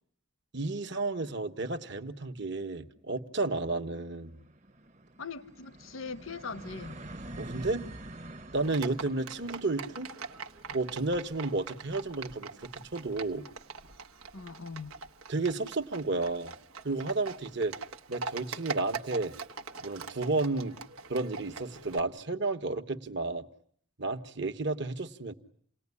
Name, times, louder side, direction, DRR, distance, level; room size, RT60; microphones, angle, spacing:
voice 1, 0.5-4.4 7.4-7.9 8.5-10.1 10.7-13.4 15.3-16.5 16.8-17.8 18.1-19.3 19.8-20.8 21.1-23.5 24.0-25.3, right 3 dB, 55° right, 1.4 m, -32 dB
sound 1, 2.3-13.8, right 1 dB, 35° right, 1.1 m, -48 dB
voice 2, 5.2-7.0 14.3-14.9, left 4 dB, 70° left, 1.0 m, -41 dB
Livestock farm animals working animals, 8.6-22.0, right 4 dB, 85° right, 1.3 m, -43 dB
29.0 x 19.0 x 9.8 m
head